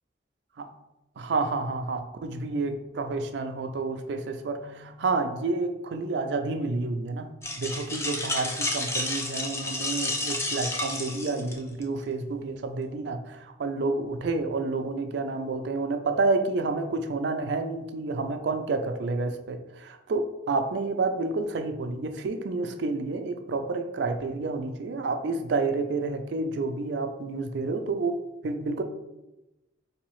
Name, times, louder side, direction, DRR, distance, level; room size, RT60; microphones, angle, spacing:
voice 1, 1.2-7.3 7.6-28.2 28.4-28.8, right 3 dB, 60° right, 6 dB, 0.4 m, -29 dB
sound 1, 7.4-11.8, left 2 dB, 15° left, 0.3 m, -31 dB
4.0 x 2.7 x 3.0 m, 0.98 s
head